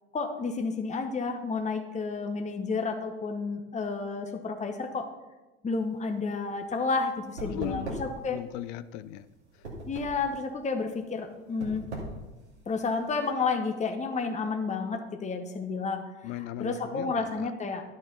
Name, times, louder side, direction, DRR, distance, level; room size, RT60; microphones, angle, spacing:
voice 1, 0.1-5.1 5.6-8.4 9.9-11.9 12.7-16.0 16.6-17.8, left 4 dB, 20° left, 4 dB, 1.1 m, -31 dB
sound 1, 5.8-13.3, right 2 dB, 85° right, 2.4 m, -41 dB
voice 2, 7.5-7.9 8.3-9.3 9.5-9.6 16.2-17.5, left 11 dB, 60° left, 15 dB, 0.7 m, -37 dB
12.0 x 6.5 x 5.5 m, 1.1 s
figure-of-eight pair, 65°, 33 cm